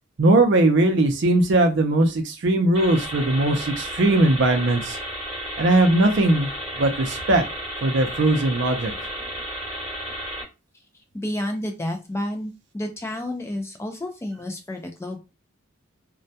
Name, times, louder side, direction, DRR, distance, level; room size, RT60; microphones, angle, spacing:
voice 1, 0.2-5.0 5.6-6.5 6.8-7.4 7.8-8.9, right 2 dB, 60° right, 5 dB, 0.5 m, -19 dB
sound 1, 2.7-10.4, equal, 30° right, 1.0 m, -33 dB
voice 2, 11.1-15.2, left 1 dB, 15° left, 4 dB, 0.3 m, -30 dB
2.2 x 2.1 x 2.7 m, 0.27 s
head